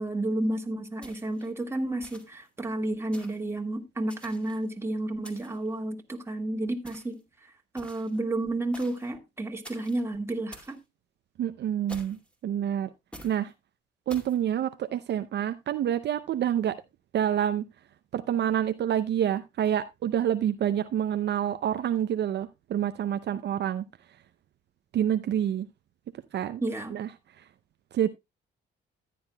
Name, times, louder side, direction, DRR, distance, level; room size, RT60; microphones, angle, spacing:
voice 1, 0.0-10.8 26.6-27.0, right 2 dB, 15° right, 1.7 m, -31 dB
sound 1, 1.0-1.5 2.0-2.5 3.1-3.5 4.1-4.7 5.2-5.7 6.9-7.2 7.8-8.2 8.7-9.1 9.6-10.0 10.5-10.8 11.9-12.3 13.1-13.4 14.1-14.4, equal, 5° left, 2.3 m, -48 dB
voice 2, 11.4-12.2 12.4-12.9 13.2-13.5 14.1-16.8 17.1-17.6 18.1-23.8 24.9-25.7 26.3-26.6 26.9-27.1 27.4-27.5 27.9-28.1, right 10 dB, 60° right, 0.6 m, -27 dB
14.0 x 9.3 x 2.2 m
cardioid pair, 90°, 20 cm